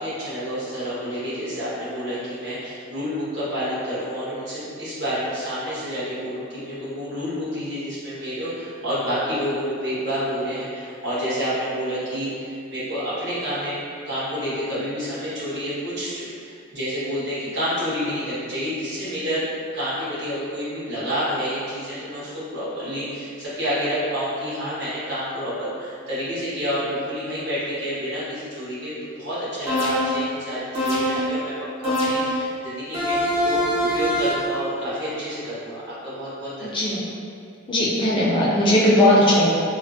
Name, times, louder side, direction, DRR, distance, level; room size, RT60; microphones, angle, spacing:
voice 1, 0.0-13.8 14.0-19.4 19.7-31.5 31.8-33.6 33.9-37.0, equal, 60° right, -12 dB, 1.3 m, -29 dB
sound 1, 29.7-30.3 30.7-31.4 31.8-32.5 32.9-34.5, equal, 30° right, 0.8 m, -23 dB
voice 2, 36.7-37.0 37.7-39.5, left 1 dB, 25° left, -7 dB, 0.4 m, -18 dB
3.2 x 2.0 x 2.5 m, 2.5 s
head